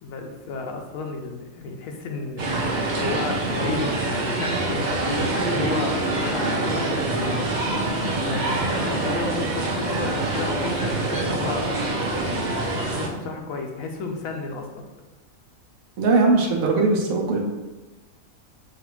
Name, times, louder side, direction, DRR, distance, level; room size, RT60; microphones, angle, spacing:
voice 1, 0.0-2.5 3.0-7.5 8.0-11.7 12.2-12.6 12.9-14.8, left 3 dB, 85° left, 3 dB, 1.0 m, -32 dB
sound 1, 2.4-13.1, right 2 dB, 55° right, 0.5 m, -25 dB
voice 2, 16.0-17.4, right 3 dB, 75° right, 1 dB, 1.1 m, -20 dB
5.4 x 2.5 x 3.0 m, 1.1 s
omnidirectional pair, 1.4 m